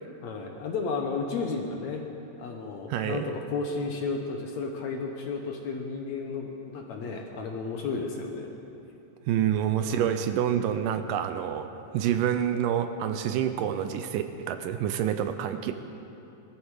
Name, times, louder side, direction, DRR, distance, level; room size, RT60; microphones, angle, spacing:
voice 1, 0.2-2.1 2.4-8.5 9.8-10.2, left 4 dB, 65° left, 2 dB, 1.9 m, -33 dB
voice 2, 2.9-3.3 9.3-11.7 11.9-15.7, right 9 dB, 80° right, 8 dB, 2.2 m, -27 dB
21.0 x 14.0 x 4.8 m, 2.8 s
omnidirectional pair, 4.0 m